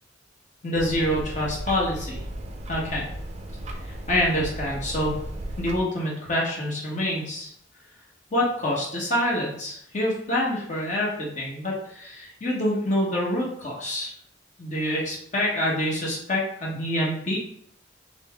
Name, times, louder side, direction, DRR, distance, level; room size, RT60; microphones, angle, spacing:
voice 1, 0.6-2.2 2.7-3.1 4.1-5.2 5.6-7.5 8.3-14.1 14.6-17.4, left 1 dB, 40° left, -4 dB, 0.9 m, -26 dB
sound 1, 0.7-5.8, right 1 dB, 35° right, 0.4 m, -35 dB
3.8 x 2.0 x 3.4 m, 0.67 s
head